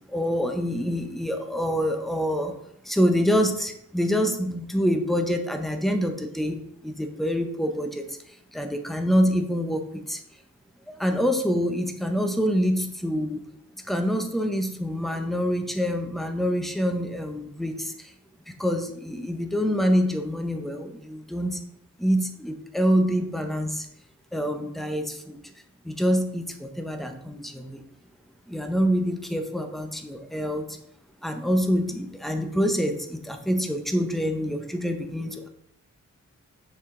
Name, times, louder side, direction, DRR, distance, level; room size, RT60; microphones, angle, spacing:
voice 1, 0.1-2.5 2.8-10.2 11.0-13.4 13.8-18.1 18.6-21.6 22.0-23.9 24.3-25.4 25.8-27.8 28.5-30.8 31.2-35.5, equal, ahead, 6 dB, 0.6 m, -26 dB
6.0 x 4.7 x 3.6 m, 0.74 s
wide cardioid pair, 160°, 31 cm